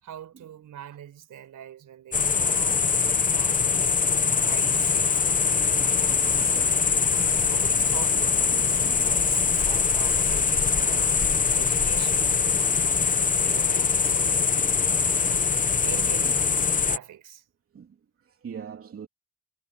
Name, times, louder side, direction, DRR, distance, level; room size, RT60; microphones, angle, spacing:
voice 1, 0.0-2.8 3.3-6.7 7.1-11.2 11.5-15.5 15.8-16.5 16.8-17.4, right 10 dB, 60° right, 5.0 m, -43 dB
sound 1, 2.1-17.0, left 5 dB, 25° left, 0.8 m, -23 dB
voice 2, 5.8-6.7 6.9-7.0 7.4-7.5 7.8-9.2 12.2-12.4 16.2-16.8 17.7-18.0 18.2-19.1, right 7 dB, 40° right, 2.9 m, -44 dB
cardioid pair, 155°, 34 cm